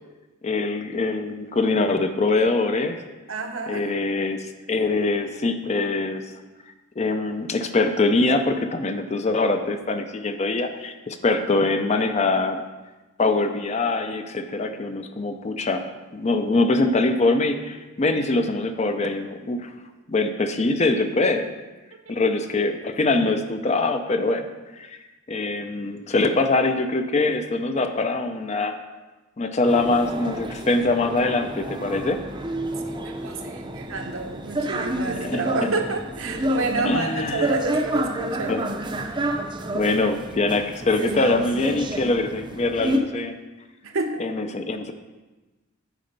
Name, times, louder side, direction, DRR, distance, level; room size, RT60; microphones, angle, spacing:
voice 1, 0.4-3.0 3.7-6.2 7.0-12.6 13.2-15.9 16.1-19.7 20.1-21.5 22.1-24.5 24.8-25.0 25.3-28.8 29.4-32.2 35.2-35.4 36.8-37.5 38.5-38.6 39.0-39.1 39.7-43.4 44.2-44.9, left 3 dB, 30° left, 8 dB, 0.5 m, -23 dB
voice 2, 3.3-3.8 33.0-38.7 41.0-41.4 43.8-44.2, right 3 dB, 70° right, 4 dB, 0.8 m, -29 dB
sound 1, 29.6-43.0, right 1 dB, 20° right, 0.6 m, -29 dB
9.1 x 4.3 x 5.2 m, 1.2 s
head